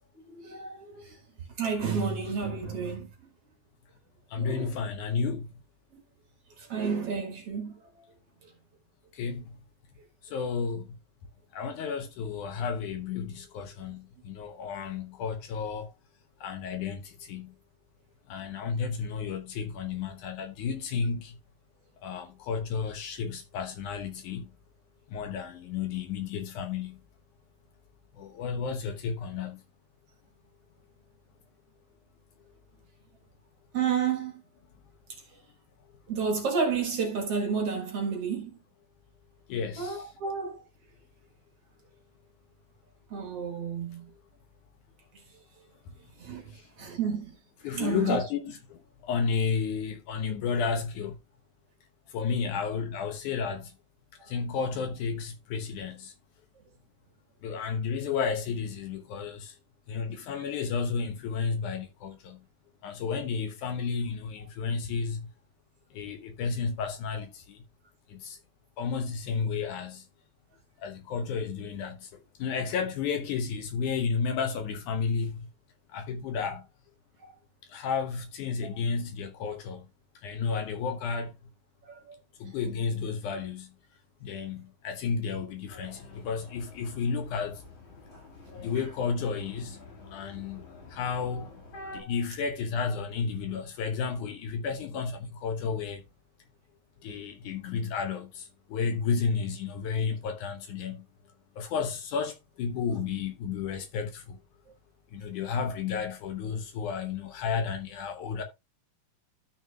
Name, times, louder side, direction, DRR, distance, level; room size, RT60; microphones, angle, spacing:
voice 1, 0.3-1.2 1.6-3.3 4.4-4.7 5.9-6.0 6.6-8.1 33.7-34.4 36.1-38.6 39.8-40.6 43.1-44.0 46.2-46.4 46.8-47.3 47.7-48.2 77.2-77.3 81.8-82.1 92.0-92.1, right 6 dB, 50° right, 2.2 m, -31 dB
voice 2, 4.3-5.6 9.1-9.5 10.2-11.0 11.5-15.9 16.4-17.5 18.3-21.4 22.0-24.5 25.1-27.0 28.1-29.6 39.5-40.1 44.1-44.2 46.5-46.6 47.6-51.2 52.1-53.7 54.2-56.1 57.4-59.6 59.9-62.4 62.8-65.3 65.9-67.6 68.1-68.4 68.8-70.1 70.8-75.5 75.9-76.7 77.7-79.9 80.2-81.3 82.4-83.7 84.2-87.6 88.6-89.8 90.1-91.5 91.9-96.0 97.0-101.1 101.6-104.4 105.1-108.4, left 5 dB, 70° left, 2.2 m, -32 dB
sound 1, 85.7-92.0, left 2 dB, 45° left, 2.1 m, -48 dB
13.5 x 6.1 x 2.3 m
omnidirectional pair, 4.0 m